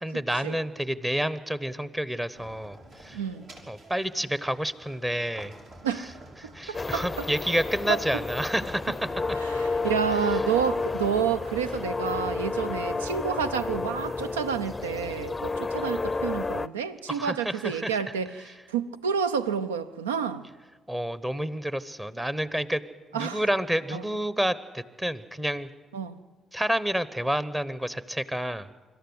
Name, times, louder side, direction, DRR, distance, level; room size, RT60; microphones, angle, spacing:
voice 1, 0.0-3.2 3.7-5.5 6.4-8.9 17.1-17.9 20.9-22.8 23.1-25.7 26.5-28.7, equal, 15° right, 1.0 m, -29 dB
sound 1, 2.3-9.2, right 1 dB, 60° right, 3.3 m, -50 dB
voice 2, 3.1-3.5 5.8-6.1 6.4-7.3 7.9-8.0 9.3-20.5 23.1-23.4 23.9-24.0 25.9-26.2, right 7 dB, 85° right, 0.5 m, -29 dB
sound 2, 6.7-16.7, left 3 dB, 25° left, 0.5 m, -31 dB
25.5 x 13.0 x 8.0 m
hypercardioid pair, 45°, 0 cm